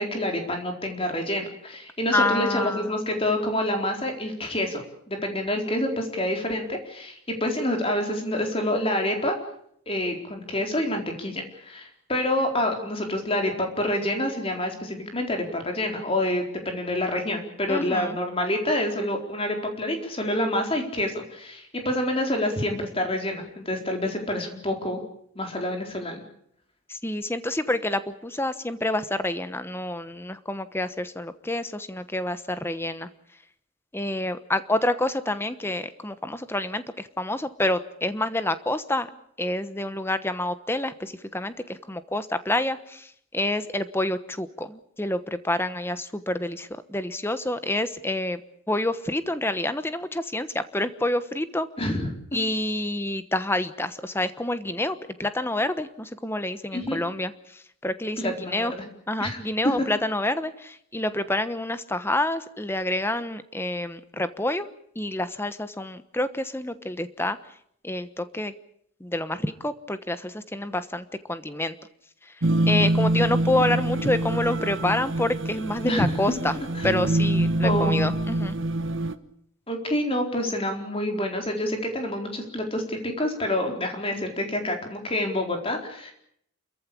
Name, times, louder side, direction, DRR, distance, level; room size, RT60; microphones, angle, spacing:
voice 1, 0.0-9.4 9.9-25.0 25.4-26.2 51.8-52.1 56.7-57.0 58.2-58.7 59.2-59.4 59.6-59.8 75.8-76.1 76.8-76.9 77.6-78.0 79.7-86.1, left 1 dB, 25° left, 3 dB, 4.2 m, -27 dB
voice 2, 2.1-3.0 17.7-18.2 26.9-33.1 33.9-39.1 39.4-48.4 48.7-51.7 52.3-58.7 59.1-64.7 64.9-67.4 67.8-68.5 69.0-71.7 72.2-76.6 76.8-78.6, left 1 dB, 10° left, 12 dB, 1.1 m, -28 dB
sound 1, 72.4-79.1, right 1 dB, 60° right, 1.3 m, -25 dB
29.0 x 14.5 x 8.6 m, 0.70 s
head